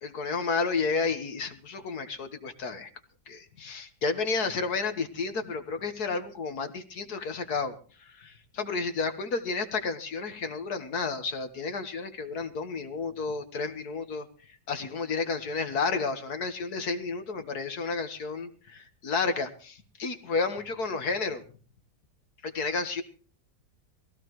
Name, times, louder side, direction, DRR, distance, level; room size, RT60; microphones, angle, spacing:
voice 1, 0.0-2.9 3.3-7.8 8.1-14.3 14.7-21.4 22.4-23.0, left 4 dB, 65° left, 8 dB, 2.0 m, -31 dB
21.0 x 16.0 x 3.1 m, 0.39 s
omnidirectional pair, 1.8 m